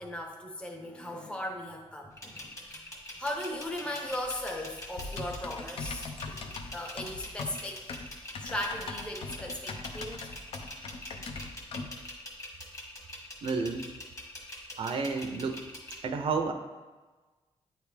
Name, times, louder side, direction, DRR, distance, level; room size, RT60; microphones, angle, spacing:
voice 1, 0.0-2.8 3.2-8.0 8.4-10.3, left 1 dB, 10° left, 2 dB, 0.7 m, -38 dB
sound 1, 2.2-16.0, left 1 dB, 30° left, 1.5 m, -44 dB
Typing, 5.0-12.0, left 3 dB, 60° left, 0.5 m, -41 dB
voice 2, 13.4-13.9 14.8-15.6 16.0-16.5, right 4 dB, 60° right, 5 dB, 0.5 m, -30 dB
9.2 x 3.4 x 3.3 m, 1.2 s
cardioid pair, 105°, 11 cm